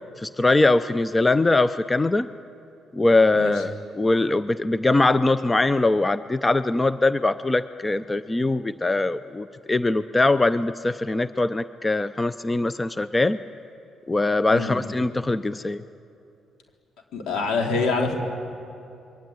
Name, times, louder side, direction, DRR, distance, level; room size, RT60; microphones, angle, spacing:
voice 1, 0.2-2.3 2.9-13.4 14.1-15.8, left 2 dB, 20° left, 13 dB, 0.6 m, -22 dB
voice 2, 17.1-18.2, left 4 dB, 85° left, 2 dB, 3.9 m, -25 dB
28.0 x 22.0 x 9.0 m, 2.7 s
cardioid pair, 90°, 0 cm